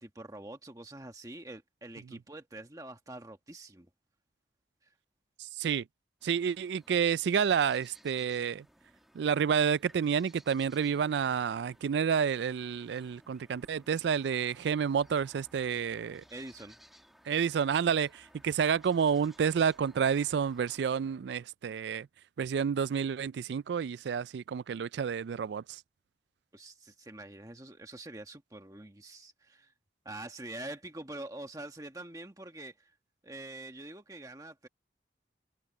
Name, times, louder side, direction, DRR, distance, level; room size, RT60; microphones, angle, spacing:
voice 1, 0.0-3.9 4.8-4.9 16.3-16.8 26.5-29.7 30.0-32.9 33.2-34.7, right 2 dB, 20° right, 1.4 m, -45 dB
voice 2, 5.4-5.8 6.2-8.7 9.1-16.2 17.3-22.1 22.4-25.8, right 7 dB, 75° right, 0.3 m, -29 dB
sound 1, 6.2-20.8, equal, ahead, 1.4 m, -61 dB
head